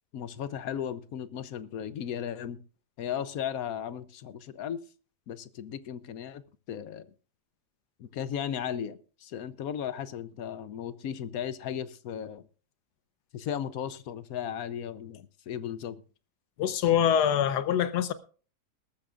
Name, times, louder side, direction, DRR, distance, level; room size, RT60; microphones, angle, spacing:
voice 1, 0.1-2.6 3.0-4.8 5.3-6.4 6.7-7.1 8.0-12.4 13.3-16.0, left 9 dB, 70° left, 1.2 m, -36 dB
voice 2, 16.6-18.1, left 9 dB, 90° left, 1.4 m, -24 dB
20.0 x 13.5 x 2.5 m
omnidirectional pair, 1.7 m